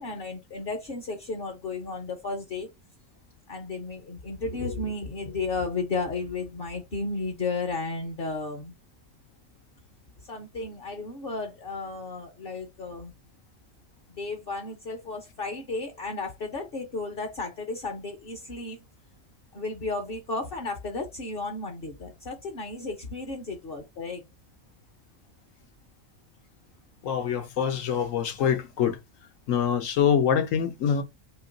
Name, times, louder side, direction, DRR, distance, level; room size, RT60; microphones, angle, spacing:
voice 1, 0.0-2.7 3.5-8.7 10.2-13.1 14.1-18.8 19.5-24.2, left 3 dB, 50° left, 0.9 m, -33 dB
voice 2, 27.0-29.0 29.5-31.0, left 8 dB, 80° left, 1.1 m, -25 dB
3.0 x 2.9 x 3.8 m
omnidirectional pair, 1.3 m